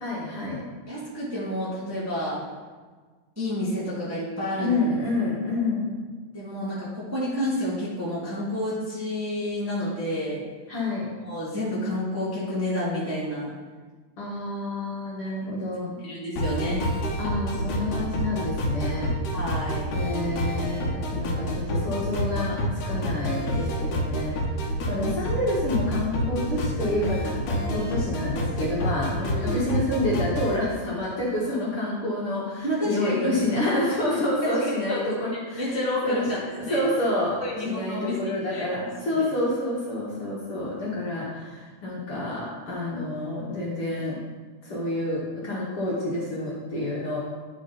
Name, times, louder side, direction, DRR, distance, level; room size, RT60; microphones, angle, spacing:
voice 1, 0.0-0.6 4.6-5.9 10.7-11.1 14.2-16.0 17.2-19.1 19.9-22.6 22.8-24.4 24.9-35.8 36.0-36.3 36.7-44.2 44.6-47.2, left 1 dB, 50° left, -6 dB, 2.2 m, -28 dB
voice 2, 0.9-2.4 3.3-4.8 6.3-10.4 11.2-13.5 16.0-16.8 19.3-19.9 29.3-29.6 32.6-33.4 34.4-35.1 35.5-36.8 37.4-38.2 38.5-39.2, left 1 dB, 5° right, -8 dB, 1.4 m, -29 dB
sound 1, 16.4-30.6, equal, 75° left, 2.5 m, -28 dB
10.5 x 4.6 x 4.0 m, 1.4 s
omnidirectional pair, 3.6 m